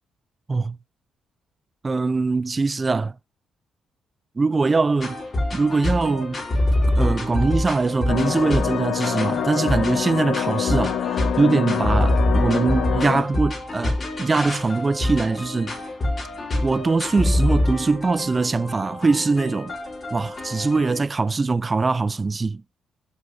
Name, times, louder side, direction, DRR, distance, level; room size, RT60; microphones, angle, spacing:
voice 1, 1.8-3.1 4.4-5.2 5.5-6.4 6.9-15.7 16.6-19.7 20.1-22.6, right 3 dB, 25° right, 0.4 m, -22 dB
sound 1, 5.0-21.0, left 1 dB, 35° left, 4.4 m, -25 dB
sound 2, 8.1-13.2, left 9 dB, 75° left, 1.4 m, -26 dB
7.0 x 6.9 x 3.2 m
cardioid pair, 90°, 0 cm